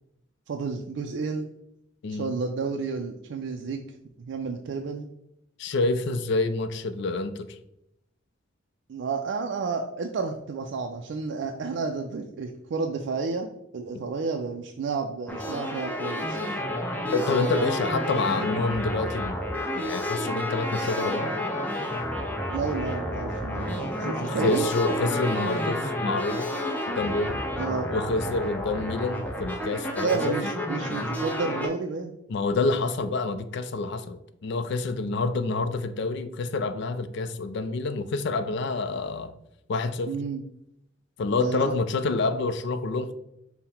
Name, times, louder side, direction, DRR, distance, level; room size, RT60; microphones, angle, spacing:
voice 1, 0.5-1.5 2.1-3.8 4.2-5.1 8.9-16.5 17.5-17.8 22.5-24.7 27.6-27.9 30.0-32.1 40.1-40.4 41.4-41.6, right 4 dB, 65° right, 0.3 m, -31 dB
voice 2, 5.6-7.6 17.1-19.4 19.7-21.3 24.2-26.5 26.9-27.4 27.9-30.4 32.3-39.3 39.7-40.2 41.2-43.1, left 3 dB, 60° left, 0.4 m, -27 dB
sound 1, 15.3-31.7, left 1 dB, 10° left, 0.6 m, -30 dB
5.5 x 2.1 x 4.2 m
head